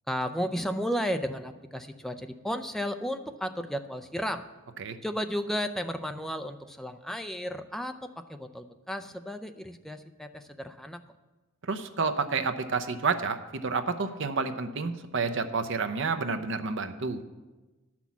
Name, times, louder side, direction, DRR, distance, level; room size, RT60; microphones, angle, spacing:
voice 1, 0.1-4.5 5.0-11.0, equal, ahead, 7 dB, 0.4 m, -33 dB
voice 2, 11.6-17.2, right 4 dB, 60° right, 9 dB, 0.7 m, -30 dB
11.0 x 6.0 x 7.2 m, 1.2 s
head